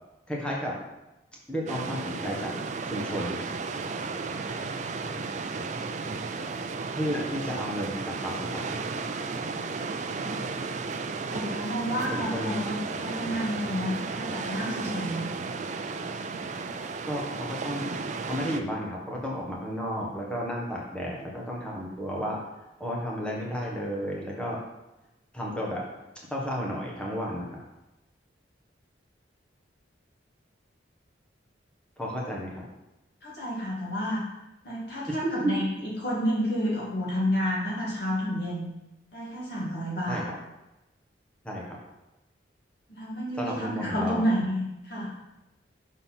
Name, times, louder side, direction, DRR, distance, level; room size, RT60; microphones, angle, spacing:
voice 1, 0.3-0.7 1.5-2.5 2.8-3.4 6.9-8.8 12.1-12.7 17.1-17.9 18.3-22.4 22.8-24.6 25.3-25.8 26.3-27.5 32.0-32.6 35.1-35.2 35.4-35.5 40.1-40.2 41.4-41.8 43.4-44.2, equal, 5° left, -3 dB, 1.3 m, -32 dB
sound 1, 1.7-18.6, right 4 dB, 40° right, 0.4 m, -34 dB
voice 2, 11.3-15.3 33.2-34.2 34.6-38.7 39.1-40.2 42.9-45.1, equal, 60° left, -6 dB, 1.7 m, -30 dB
6.4 x 3.9 x 5.7 m, 0.97 s
head